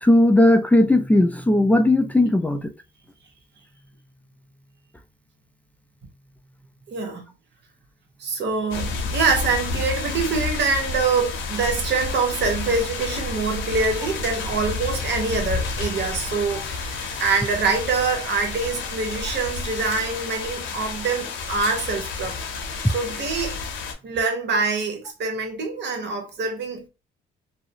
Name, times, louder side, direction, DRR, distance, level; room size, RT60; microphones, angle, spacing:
voice 1, 0.0-2.7, left 1 dB, 10° left, 0.3 m, -17 dB
voice 2, 6.9-7.2 8.2-22.4 22.8-23.6 24.0-26.9, right 4 dB, 60° right, 0.8 m, -25 dB
sound 1, 8.7-23.9, left 4 dB, 80° left, 0.6 m, -30 dB
2.4 x 2.0 x 2.7 m
cardioid pair, 90°, 20 cm